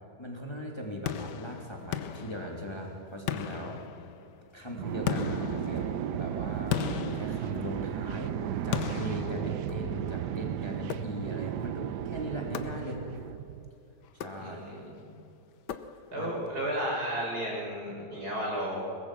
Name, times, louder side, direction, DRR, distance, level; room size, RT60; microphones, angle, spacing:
voice 1, 0.2-3.8 4.5-8.4 8.6-13.0 14.1-14.6 16.2-16.3, equal, 15° left, 0 dB, 2.8 m, -39 dB
sound 1, 1.1-2.9 3.3-4.4 5.1-8.1 8.7-10.1 10.9-11.5 12.5-13.3 14.1-14.9 15.7-16.4, left 9 dB, 80° left, 1.5 m, -37 dB
sound 2, 4.7-13.7, right 11 dB, 85° right, 1.3 m, -34 dB
voice 2, 14.4-15.0 16.1-18.8, equal, 65° right, -3 dB, 7.3 m, -33 dB
22.0 x 21.0 x 6.1 m, 2.8 s
omnidirectional pair, 1.8 m